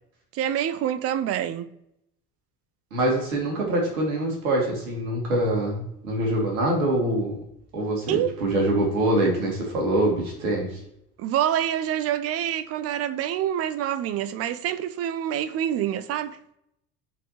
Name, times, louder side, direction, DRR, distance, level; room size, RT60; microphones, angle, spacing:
voice 1, 0.3-1.7 8.1-8.4 11.2-16.4, right 10 dB, 30° right, 0.6 m, -26 dB
voice 2, 2.9-7.3 7.7-10.8, right 1 dB, 65° right, 2.7 m, -24 dB
13.5 x 4.6 x 3.0 m
figure-of-eight pair, 65°, 46 cm